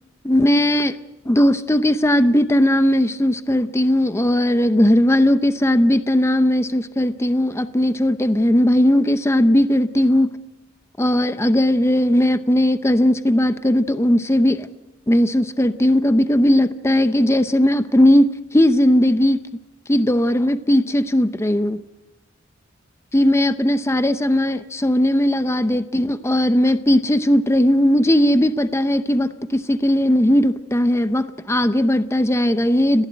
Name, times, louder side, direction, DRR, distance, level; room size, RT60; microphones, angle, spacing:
voice 1, 0.2-0.9 1.2-10.3 11.0-14.7 15.1-19.4 19.9-21.8 23.1-33.0, left 1 dB, 15° left, 11 dB, 0.7 m, -18 dB
30.0 x 11.5 x 10.0 m, 1.0 s
head